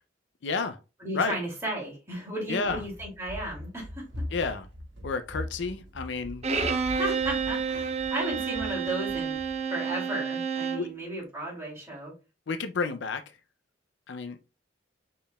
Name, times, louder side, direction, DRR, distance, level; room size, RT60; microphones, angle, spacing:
voice 1, 0.4-0.8 1.1-1.3 2.5-2.8 4.3-4.7 5.0-6.4 10.8-10.9 12.5-13.2 14.1-14.4, left 4 dB, 65° left, 0.5 m, -30 dB
voice 2, 1.0-4.1 4.3-4.5 6.7-9.3 9.7-12.1, right 1 dB, 15° right, 2.4 m, -34 dB
Run, 2.6-9.6, left 1 dB, 80° right, 1.3 m, -41 dB
Bowed string instrument, 6.4-10.9, right 5 dB, 35° right, 0.5 m, -30 dB
5.3 x 4.3 x 2.2 m
head